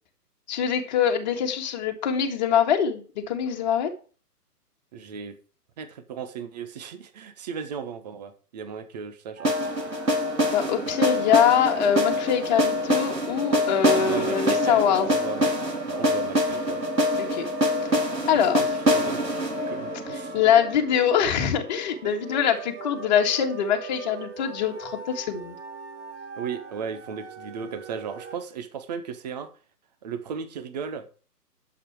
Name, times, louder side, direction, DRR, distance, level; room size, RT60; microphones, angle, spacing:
voice 1, 0.5-3.9 10.5-15.1 17.2-17.5 18.3-18.7 20.3-25.6, left 8 dB, 25° left, 3 dB, 1.9 m, -23 dB
voice 2, 4.9-5.4 5.8-9.5 9.8-9.9 13.9-16.8 18.4-18.5 18.7-19.3 19.5-20.4 22.0-22.1 26.4-29.5 30.0-31.2, right 6 dB, 25° right, 10 dB, 1.2 m, -36 dB
sound 1, 9.4-28.4, right 5 dB, 45° right, 2.1 m, -41 dB
sound 2, 9.4-21.4, equal, 90° right, 2.7 m, -25 dB
11.5 x 7.6 x 4.8 m, 0.38 s
figure-of-eight pair, 135°, 48 cm